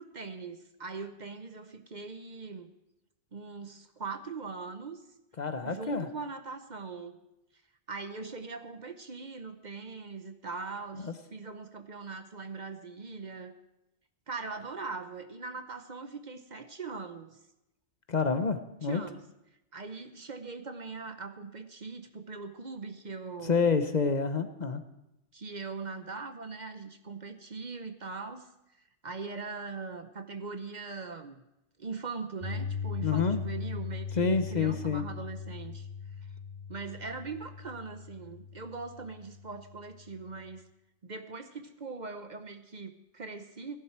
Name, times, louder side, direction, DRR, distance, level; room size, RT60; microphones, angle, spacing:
voice 1, 0.0-2.7 3.3-5.0 5.6-7.2 7.9-13.6 14.3-17.4 18.8-19.2 19.7-23.8 25.3-28.5 29.0-31.4 31.8-35.9 36.7-40.7 41.0-43.8, right 4 dB, 40° right, 8 dB, 0.9 m, -41 dB
voice 2, 5.4-6.1 11.0-11.1 18.1-19.0 23.4-24.8 33.0-33.4 34.1-35.0, left 5 dB, 40° left, 9 dB, 0.9 m, -28 dB
Piano, 32.4-40.5, left 6 dB, 70° left, 3.5 m, -39 dB
17.5 x 11.5 x 4.5 m, 0.90 s
omnidirectional pair, 1.2 m